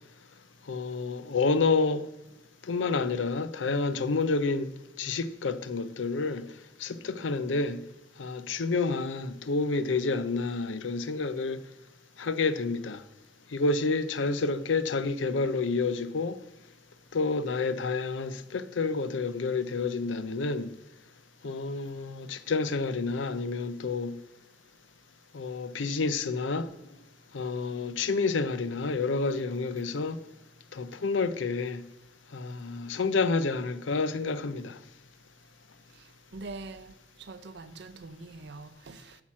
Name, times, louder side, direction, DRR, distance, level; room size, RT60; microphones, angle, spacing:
voice 1, 0.7-2.0 2.7-4.7 5.0-6.5 6.8-7.8 8.2-11.6 12.2-13.0 13.5-16.4 17.1-20.7 21.4-24.1 25.3-26.7 27.3-30.2 30.7-31.8 32.3-34.8, left 4 dB, 80° left, 0.6 m, -29 dB
voice 2, 36.3-39.2, right 3 dB, 65° right, 0.6 m, -44 dB
8.5 x 5.9 x 6.0 m
head